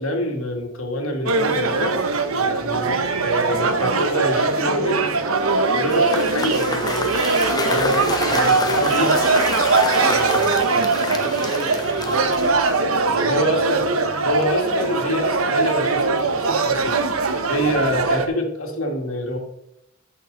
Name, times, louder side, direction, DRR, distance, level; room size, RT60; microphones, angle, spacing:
voice 1, 0.0-2.0 2.6-5.2 5.7-7.2 7.7-9.3 13.2-13.9 14.2-19.4, left 1 dB, 85° left, 2 dB, 2.1 m, -26 dB
sound 1, 1.3-18.3, right 4 dB, 90° right, 1.1 m, -21 dB
voice 2, 2.4-2.7 7.5-9.0 9.7-13.5 17.7-18.0, right 1 dB, 45° right, -2 dB, 3.8 m, -36 dB
Cheering / Applause / Crowd, 5.8-12.9, left 3 dB, 20° left, 0.9 m, -28 dB
14.0 x 6.4 x 4.0 m, 0.80 s
head